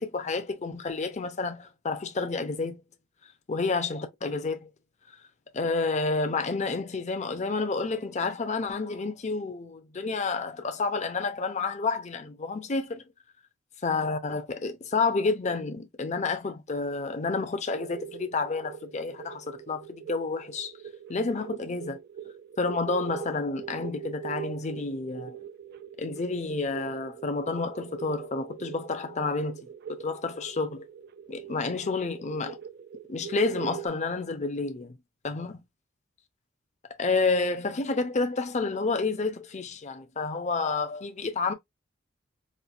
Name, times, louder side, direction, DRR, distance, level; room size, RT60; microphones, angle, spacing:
voice 1, 0.0-2.8 3.5-4.7 5.5-13.0 13.8-20.7 21.1-22.0 22.6-25.4 26.0-29.6 29.9-30.9 31.3-32.6 33.1-35.0 35.2-35.6 37.0-41.5, left 3 dB, 35° left, 0.6 m, -30 dB
sound 1, 17.7-33.9, right 9 dB, 50° right, 0.4 m, -42 dB
4.3 x 2.5 x 2.5 m
head